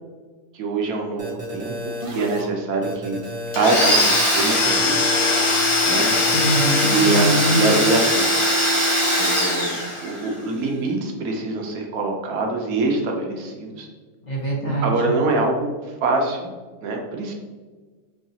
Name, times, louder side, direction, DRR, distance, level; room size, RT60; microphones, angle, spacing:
voice 1, 0.5-3.2 3.5-5.1 5.8-6.1 6.8-8.3 9.2-13.9 14.8-15.7 16.0-16.5 16.8-17.3, right 3 dB, 85° right, 2 dB, 1.2 m, -24 dB
sound 1, 1.2-2.4 2.8-4.1 4.4-5.7 6.1-7.3, left 1 dB, 30° right, 0.7 m, -32 dB
Domestic sounds home sounds, 3.5-10.3, left 1 dB, 70° left, 1.7 m, -20 dB
voice 2, 6.3-7.6 14.3-15.2, right 1 dB, 35° left, -5 dB, 0.9 m, -23 dB
5.7 x 2.4 x 2.7 m, 1.4 s
omnidirectional pair, 1.5 m